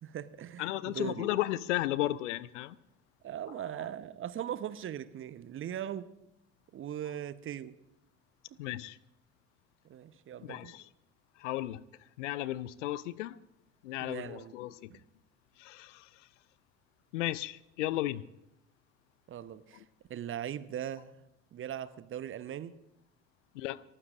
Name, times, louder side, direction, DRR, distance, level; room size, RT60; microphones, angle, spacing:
voice 1, 0.0-1.4 3.2-6.1 6.7-7.7 9.8-10.7 14.0-14.5 14.9-15.0 19.3-19.8 20.1-21.2 21.5-22.7, right 10 dB, 30° right, 0.9 m, -40 dB
voice 2, 0.6-2.8 8.6-9.0 10.4-10.8 11.4-11.8 12.2-13.4 13.8-14.9 15.6-16.1 17.1-18.3 23.5-23.8, left 15 dB, 60° left, 0.7 m, -34 dB
29.5 x 14.5 x 2.5 m
figure-of-eight pair, 65°, 41 cm